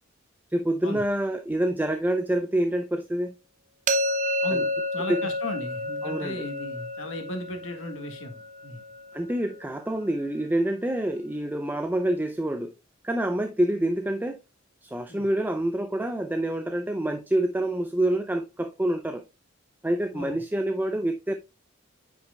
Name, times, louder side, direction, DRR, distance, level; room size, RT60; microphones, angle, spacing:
voice 1, 0.5-3.3 4.5-4.6 5.1-5.2 6.0-6.5 9.1-12.7 13.0-14.4 14.8-19.2 19.8-21.3, right 1 dB, 10° right, 0.5 m, -27 dB
sound 1, 3.9-9.7, left 1 dB, 40° right, 0.7 m, -30 dB
voice 2, 4.4-8.8 15.1-15.2 20.1-20.4, left 1 dB, 80° left, 1.6 m, -36 dB
9.2 x 5.9 x 2.2 m
head